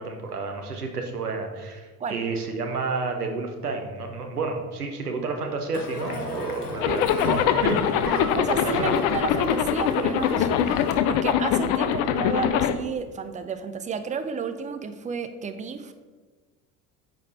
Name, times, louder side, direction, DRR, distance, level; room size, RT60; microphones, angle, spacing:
voice 1, 0.0-8.2 8.6-9.0, right 3 dB, 85° right, 3 dB, 1.1 m, -30 dB
Crowd, 5.7-11.0, left 3 dB, 80° left, 0.9 m, -35 dB
Zipper (clothing), 6.8-12.7, left 9 dB, 45° left, 0.6 m, -23 dB
voice 2, 8.1-15.9, right 5 dB, 15° right, 9 dB, 0.6 m, -32 dB
8.9 x 5.3 x 4.1 m, 1.3 s
figure-of-eight pair, 65°, 45 cm